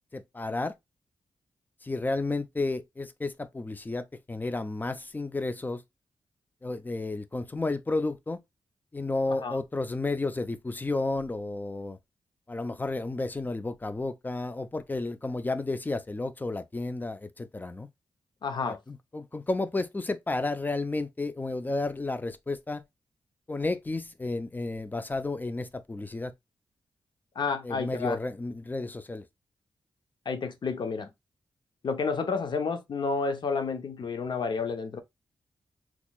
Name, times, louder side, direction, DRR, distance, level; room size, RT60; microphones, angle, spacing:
voice 1, 0.1-0.7 1.8-5.8 6.6-8.4 8.9-12.0 12.5-17.9 18.6-22.8 23.5-26.3 27.6-29.2, left 2 dB, 20° left, 0.5 m, -32 dB
voice 2, 18.4-18.8 27.4-28.2 30.3-31.1 31.8-35.0, left 4 dB, 60° left, 0.7 m, -30 dB
4.1 x 2.9 x 2.3 m
cardioid pair, 75°, 9 cm